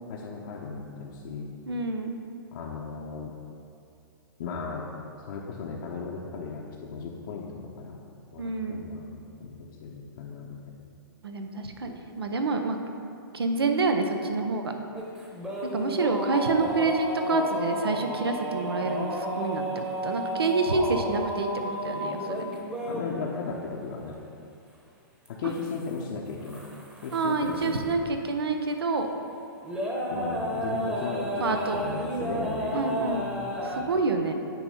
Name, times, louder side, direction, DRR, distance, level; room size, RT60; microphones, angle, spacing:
voice 1, 0.1-1.5 2.5-3.4 4.4-4.9 5.3-8.0 8.3-10.8 22.8-24.2 25.3-26.6 27.0-28.1 30.1-33.9, left 4 dB, 55° left, -4 dB, 0.8 m, -36 dB
voice 2, 1.7-2.2 8.4-8.9 11.2-12.8 13.3-14.7 15.7-22.5 27.1-29.1 31.4-31.8 32.7-33.2 33.6-34.3, right 3 dB, 85° right, 5 dB, 0.7 m, -27 dB
sound 1, 14.9-23.1 25.3-26.0 26.3-27.8 28.2-28.3 29.6-33.8, equal, 10° right, 1.0 m, -32 dB
9.1 x 3.1 x 5.4 m, 2.6 s
hypercardioid pair, 125°, 13 cm